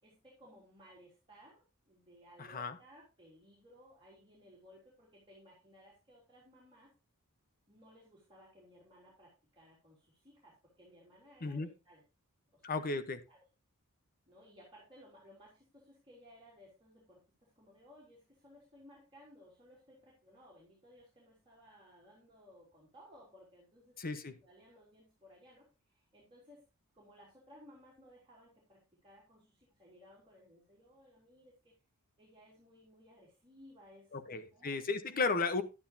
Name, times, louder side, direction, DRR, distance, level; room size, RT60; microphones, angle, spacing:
voice 1, 0.0-6.9 7.7-12.0 12.5-13.4 14.3-24.0 24.4-26.7 26.9-31.8 32.2-35.2, equal, 25° right, 3.4 m, -60 dB
voice 2, 12.6-13.2 24.0-24.4 34.1-35.6, left 4 dB, 40° left, 1.0 m, -34 dB
11.0 x 9.4 x 2.7 m
head